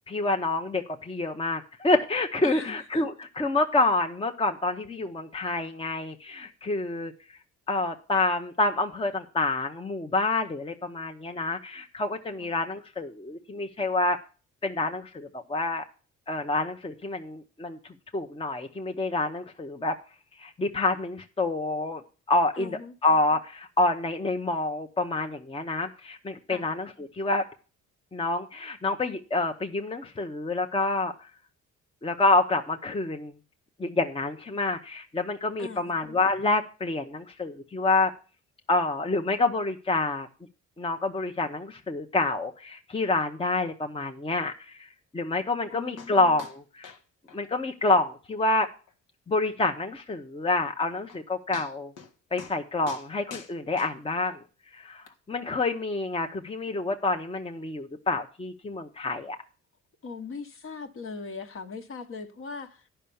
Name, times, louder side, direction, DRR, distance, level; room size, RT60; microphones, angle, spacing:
voice 1, 0.1-7.1 7.7-14.2 14.6-15.8 16.3-17.8 18.1-19.9 20.4-22.0 22.3-27.4 28.1-31.1 32.0-33.3 33.8-38.1 38.7-40.3 40.8-44.9 45.1-46.9 47.3-48.7 49.3-51.9 52.3-54.4 54.7-59.4, left 2 dB, 20° left, 0.8 m, -27 dB
voice 2, 2.4-3.0 12.4-12.5 22.5-23.0 26.5-26.7 35.6-35.9 45.7-46.2 60.0-62.9, left 4 dB, 45° left, 1.2 m, -40 dB
sound 1, 46.0-46.1 46.4-46.6 46.8-47.0 47.3-47.4 47.8-47.9 48.3-48.4 48.9-49.0 50.7-50.8 51.1-51.2 51.5-52.1 52.4-52.6 52.9-54.3 55.1-55.2, left 6 dB, 80° left, 1.5 m, -45 dB
10.0 x 5.7 x 6.9 m
cardioid pair, 90°, 30 cm